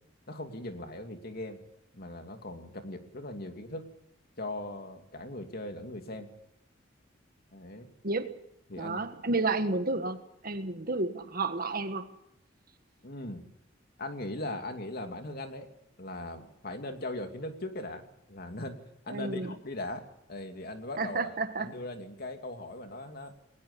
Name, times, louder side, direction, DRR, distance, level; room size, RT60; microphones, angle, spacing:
voice 1, 0.3-1.6 1.9-3.9 4.4-6.3 7.5-7.9 8.7-9.1 13.0-13.5 14.0-15.7 16.0-18.8 19.0-20.0 20.3-23.3, left 1 dB, 50° left, 2.7 m, -39 dB
voice 2, 8.8-12.1 19.1-19.5 21.0-21.7, right 3 dB, 50° right, 1.6 m, -31 dB
21.0 x 19.5 x 6.9 m
head